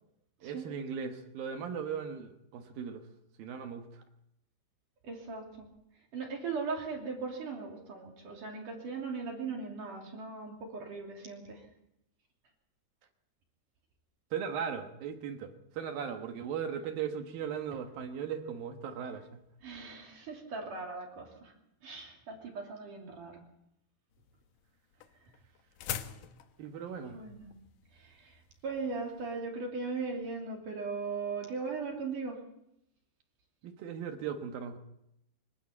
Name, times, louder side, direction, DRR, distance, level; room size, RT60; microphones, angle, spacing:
voice 1, 0.4-3.0 3.4-4.0 14.3-19.4 26.6-27.2 33.6-34.8, right 7 dB, 65° right, 6 dB, 2.6 m, -38 dB
voice 2, 5.0-5.7 6.1-11.7 19.6-21.5 21.8-23.4 26.0-26.2 27.1-27.6 27.9-32.4, right 4 dB, 50° right, 1 dB, 4.1 m, -39 dB
sound 1, 24.1-29.3, left 10 dB, 90° left, 1.8 m, -44 dB
24.5 x 13.5 x 8.6 m, 0.82 s
omnidirectional pair, 5.4 m